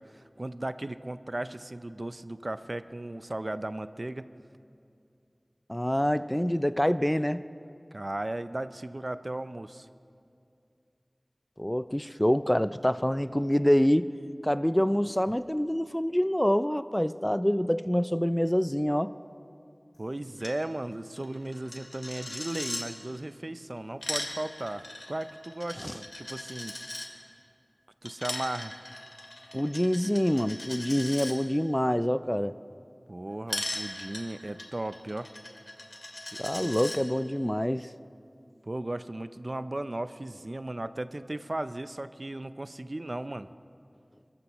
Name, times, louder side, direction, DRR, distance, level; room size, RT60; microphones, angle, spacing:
voice 1, 0.0-4.3 7.9-9.9 20.0-26.7 28.0-28.8 33.1-35.3 36.6-36.7 38.6-43.5, right 1 dB, 55° right, 12 dB, 0.5 m, -36 dB
voice 2, 5.7-7.4 11.6-14.1 14.4-19.1 25.8-25.9 29.5-32.5 36.4-37.9, equal, 15° left, 14 dB, 0.4 m, -26 dB
Coin (dropping), 20.4-20.6 20.8-20.9 21.2-22.8 23.8-27.1 28.0-31.3 33.5-37.0, left 1 dB, 70° left, 2.0 m, -38 dB
29.0 x 14.0 x 3.1 m, 2.5 s
wide cardioid pair, 40°, 0 cm